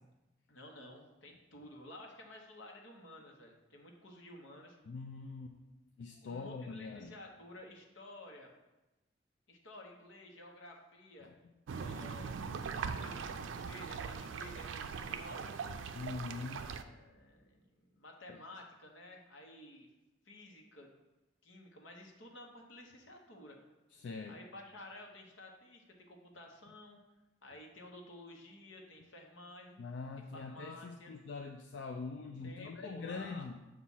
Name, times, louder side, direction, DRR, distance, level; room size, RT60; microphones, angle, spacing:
voice 1, 0.5-4.8 6.2-8.5 9.5-11.3 11.7-15.5 16.7-19.9 20.2-20.9 21.4-23.6 24.3-27.0 27.4-29.8 30.3-31.1 32.4-33.5, left 1 dB, 90° left, 1 dB, 1.0 m, -53 dB
voice 2, 4.8-5.5 6.0-7.1 11.2-11.3 15.9-16.7 18.3-18.4 24.0-24.4 29.8-33.6, left 4 dB, 75° left, 3 dB, 0.4 m, -43 dB
sound 1, 11.7-16.8, right 5 dB, 90° right, 0.4 m, -41 dB
7.2 x 2.4 x 5.5 m, 1.0 s
head